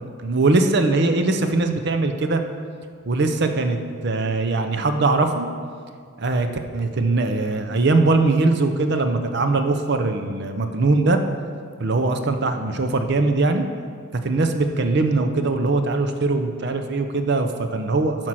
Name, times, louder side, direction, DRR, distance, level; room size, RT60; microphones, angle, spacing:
voice 1, 0.0-2.4 3.0-3.8 4.0-5.5 6.2-6.5 6.7-11.2 11.8-13.6 14.1-18.3, right 3 dB, 55° right, 6 dB, 0.6 m, -21 dB
10.0 x 4.5 x 6.2 m, 2.1 s
head